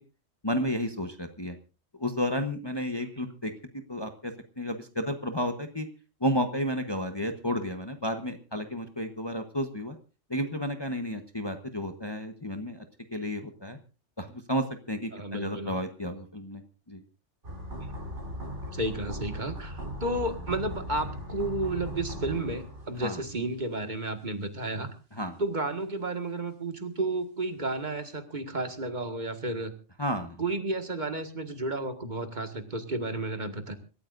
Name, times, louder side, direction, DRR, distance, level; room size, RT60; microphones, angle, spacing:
voice 1, 0.4-1.6 2.0-3.5 3.9-5.9 6.2-10.0 10.3-12.9 13.1-13.8 14.2-16.6 16.9-17.0 23.0-23.2 25.1-25.3 30.0-30.4, equal, 20° left, 6 dB, 1.1 m, -32 dB
voice 2, 15.1-15.8 18.7-24.9 25.4-29.7 30.4-33.7, right 2 dB, 40° right, 7 dB, 1.9 m, -32 dB
sound 1, 17.4-23.5 23.8-23.9, equal, 75° right, 4.0 m, -38 dB
26.0 x 14.0 x 2.6 m, 0.33 s
omnidirectional pair, 1.2 m